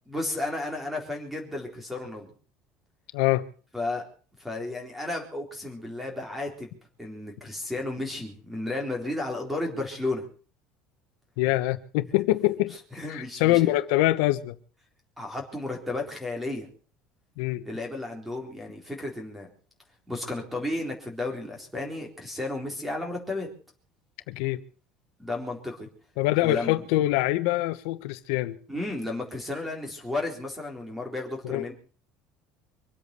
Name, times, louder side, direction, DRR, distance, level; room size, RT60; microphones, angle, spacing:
voice 1, 0.1-2.3 3.7-4.0 4.4-6.7 7.0-10.2 12.9-13.7 15.2-16.7 17.6-19.5 20.1-23.5 25.2-25.9 26.4-26.8 28.7-31.7, left 2 dB, 5° right, 3.9 m, -33 dB
voice 2, 3.1-3.5 11.4-12.8 13.1-14.5 17.4-17.6 24.3-24.6 26.2-28.6 31.4-31.6, left 17 dB, 80° left, 1.2 m, -24 dB
24.5 x 8.4 x 6.9 m
cardioid pair, 180°, 3 cm